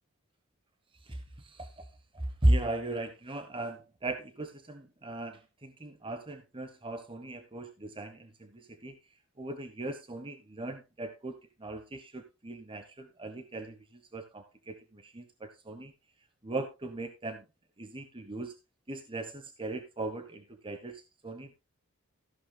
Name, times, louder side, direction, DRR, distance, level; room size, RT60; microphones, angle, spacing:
voice 1, 0.9-1.9 2.1-9.0 9.4-15.9 16.4-17.4 17.8-18.5 18.9-21.5, right 1 dB, 25° right, 8 dB, 1.0 m, -36 dB
14.5 x 11.5 x 2.3 m, 0.24 s
head